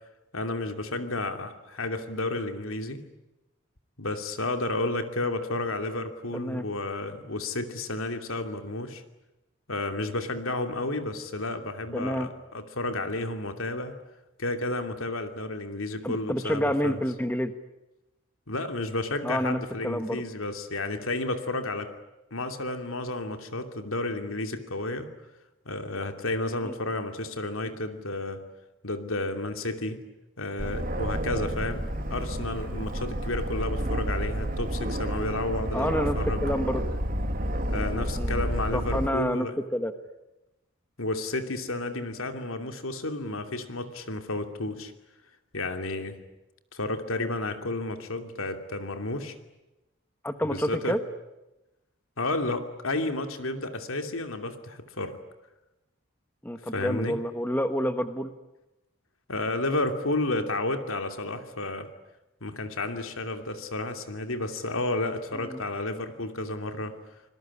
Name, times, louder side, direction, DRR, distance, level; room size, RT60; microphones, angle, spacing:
voice 1, 0.3-3.0 4.0-9.0 9.7-13.9 14.4-17.0 18.5-21.9 22.3-25.1 25.7-28.4 28.8-30.0 30.4-31.8 32.1-36.4 37.7-39.6 41.0-44.9 45.5-46.2 46.7-49.4 50.5-51.0 52.2-55.2 56.7-57.1 59.3-61.9 62.4-67.0, left 2 dB, 85° left, 7 dB, 2.8 m, -31 dB
voice 2, 6.3-6.7 11.9-12.3 16.0-17.5 19.2-20.2 26.6-26.7 35.7-36.8 38.2-38.4 38.7-39.9 50.2-51.0 56.4-58.3 65.3-65.6, equal, 10° left, 9 dB, 1.3 m, -29 dB
Aircraft, 30.6-39.1, right 1 dB, 40° right, 2.2 m, -30 dB
26.5 x 21.0 x 9.9 m, 0.98 s
head